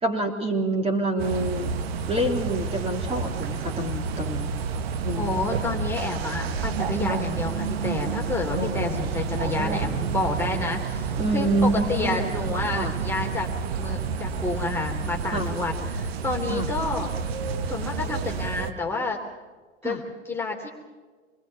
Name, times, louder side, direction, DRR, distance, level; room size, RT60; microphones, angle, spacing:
voice 1, 0.0-1.8 2.1-4.5 5.0-5.4 8.5-9.8 11.2-12.3 12.7-12.9 15.3-15.5 16.5-16.7 19.8-20.0, right 1 dB, 15° right, 3 dB, 3.6 m, -27 dB
sound 1, 1.2-18.7, right 5 dB, 65° right, 1.5 m, -29 dB
voice 2, 5.2-17.1 17.7-19.2 19.8-20.7, left 3 dB, 5° left, -1 dB, 3.1 m, -30 dB
27.5 x 21.0 x 5.7 m, 1.4 s
hypercardioid pair, 95°, 33 cm